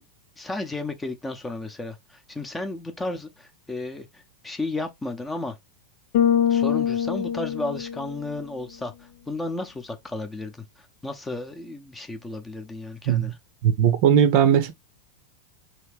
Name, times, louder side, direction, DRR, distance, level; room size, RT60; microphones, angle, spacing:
voice 1, 0.4-5.6 6.5-13.3, left 2 dB, 10° left, 0.8 m, -33 dB
Bass guitar, 6.1-8.5, left 9 dB, 50° left, 0.5 m, -24 dB
voice 2, 13.6-14.7, right 9 dB, 45° right, 0.7 m, -18 dB
4.2 x 3.2 x 3.2 m
figure-of-eight pair, 90°, 0 cm